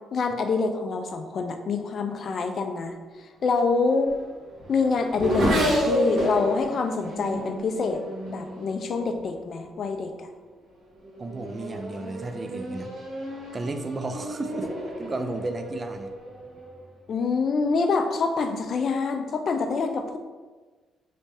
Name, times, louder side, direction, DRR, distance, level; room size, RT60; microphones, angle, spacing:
voice 1, 0.1-3.0 3.4-4.1 4.7-8.0 8.3-10.3 17.1-20.2, left 4 dB, 55° left, 6 dB, 0.4 m, -26 dB
Race car auto racing / Accelerating revving vroom, 3.5-9.4 10.2-10.6 11.0-16.9, equal, 60° right, 1.3 m, -31 dB
voice 2, 11.2-12.9 13.5-14.7 15.0-16.1, right 2 dB, 30° right, 7 dB, 0.3 m, -33 dB
3.2 x 2.7 x 3.4 m, 1.3 s
cardioid pair, 90°, 0 cm